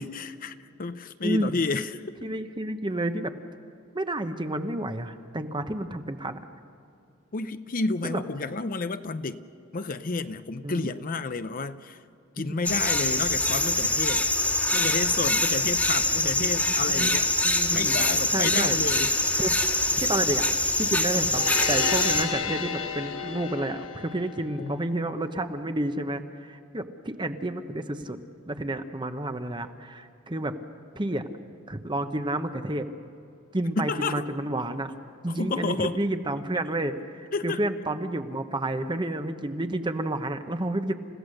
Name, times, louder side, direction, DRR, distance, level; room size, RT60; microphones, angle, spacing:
voice 1, 0.0-2.0 7.3-9.4 9.7-12.0 12.4-14.3 14.7-17.3 17.7-19.2 24.6-24.8 33.8-34.3 35.4-36.0 37.3-37.6, left 3 dB, 40° left, 11 dB, 0.6 m, -30 dB
voice 2, 1.2-1.6 2.2-3.3 3.9-6.4 8.0-8.2 10.6-10.9 12.5-12.6 16.9-17.2 17.4-18.1 18.3-18.8 19.4-19.6 19.9-20.5 20.8-28.2 28.5-30.5 30.9-31.2 31.7-32.9 33.5-34.9 35.2-40.9, right 1 dB, 20° right, 8 dB, 1.0 m, -30 dB
sound 1, 12.6-22.2, left 2 dB, 10° left, 1.6 m, -24 dB
sound 2, 21.1-24.8, left 6 dB, 75° left, 1.2 m, -32 dB
30.0 x 16.0 x 6.6 m, 2.6 s
head